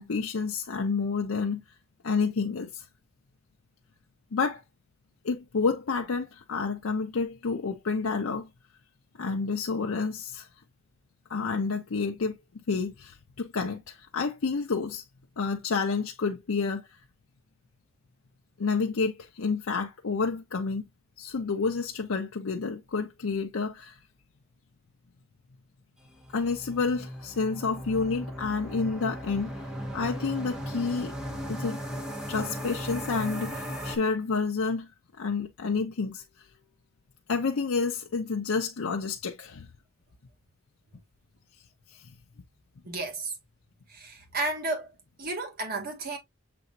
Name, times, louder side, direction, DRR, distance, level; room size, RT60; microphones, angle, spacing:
voice 1, 0.0-1.6 2.0-2.9 4.3-4.6 5.2-8.5 9.2-10.5 11.3-12.4 12.7-15.0 15.4-17.0 18.6-20.8 21.2-24.0 26.3-29.5 29.9-31.1 31.5-31.8 32.3-34.9 35.2-36.5 37.3-39.7 41.9-42.1, left 4 dB, 75° left, 0.6 m, -29 dB
sound 1, 26.1-34.0, equal, 5° right, 1.3 m, -37 dB
voice 2, 42.8-43.3 43.9-44.9 45.2-46.2, right 2 dB, 45° right, 1.6 m, -32 dB
6.9 x 2.8 x 2.6 m
head